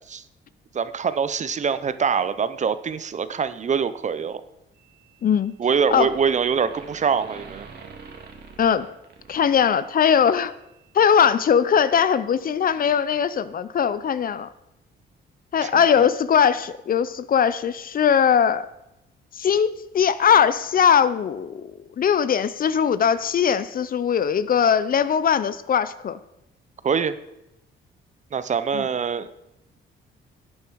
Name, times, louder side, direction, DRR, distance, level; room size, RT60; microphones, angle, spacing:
voice 1, 0.7-4.4 5.6-7.7 15.6-15.7 16.0-16.1 26.8-27.2 28.3-29.3, right 6 dB, 35° right, 14 dB, 0.6 m, -24 dB
sound 1, 4.8-5.4 5.7-10.1, right 5 dB, 55° right, 2.0 m, -45 dB
voice 2, 5.2-5.5 5.9-6.1 8.6-8.9 9.3-10.5 10.9-14.5 15.5-18.7 19.3-26.2 28.7-28.9, left 7 dB, 45° left, 15 dB, 0.6 m, -20 dB
11.0 x 8.7 x 4.6 m, 0.89 s
cardioid pair, 90°, 20 cm